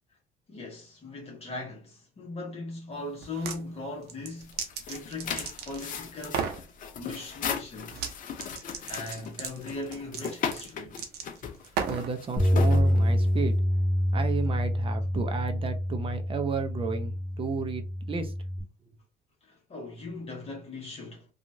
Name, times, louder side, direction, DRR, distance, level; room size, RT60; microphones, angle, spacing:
voice 1, 0.5-6.6 7.0-8.1 8.9-11.0 19.4-21.3, left 2 dB, 35° left, 1.1 m, -39 dB
sound 1, 3.2-3.6 4.0-5.9 6.2-6.6 7.9-8.1 8.4-12.1, right 7 dB, 75° right, 0.7 m, -35 dB
sound 2, 4.4-13.5, left 7 dB, 50° left, 0.6 m, -37 dB
voice 2, 11.9-13.6 14.1-18.4, right 5 dB, 30° right, 0.6 m, -33 dB
sound 3, 12.4-18.6, equal, ahead, 1.0 m, -26 dB
2.9 x 2.4 x 2.7 m
cardioid pair, 110°, 17 cm